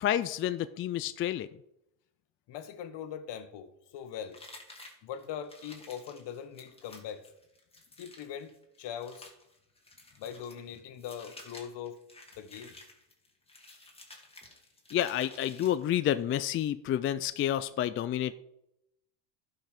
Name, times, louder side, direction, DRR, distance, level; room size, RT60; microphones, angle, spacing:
voice 1, 0.0-1.5 14.9-18.3, left 11 dB, 30° left, 0.3 m, -29 dB
voice 2, 2.5-4.4 5.0-7.2 8.0-9.3 10.2-12.0 12.4-12.8, left 8 dB, 55° left, 1.5 m, -41 dB
sound 1, 4.3-16.2, left 2 dB, 10° left, 2.4 m, -53 dB
11.5 x 5.7 x 5.8 m
supercardioid pair, 100°, 50 cm